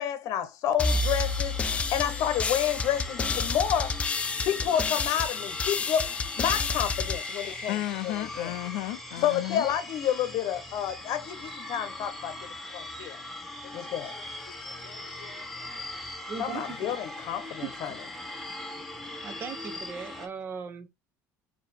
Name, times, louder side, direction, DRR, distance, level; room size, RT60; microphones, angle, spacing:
voice 1, 0.0-1.6 1.9-4.0 4.4-6.1 6.4-8.5 9.2-12.3 12.7-13.2 13.7-14.3 16.4-18.0, left 10 dB, 55° left, 0.9 m, -29 dB
sound 1, 0.8-8.3, left 4 dB, 20° left, 0.4 m, -30 dB
sound 2, 0.8-20.3, left 1 dB, 5° left, 0.9 m, -40 dB
voice 2, 7.5-9.7 13.6-14.0 14.5-15.8, left 15 dB, 80° left, 0.5 m, -36 dB
voice 3, 16.3-17.0 18.7-18.8 19.2-20.9, right 5 dB, 35° right, 0.8 m, -39 dB
4.7 x 2.9 x 3.4 m
cardioid pair, 150°, 7 cm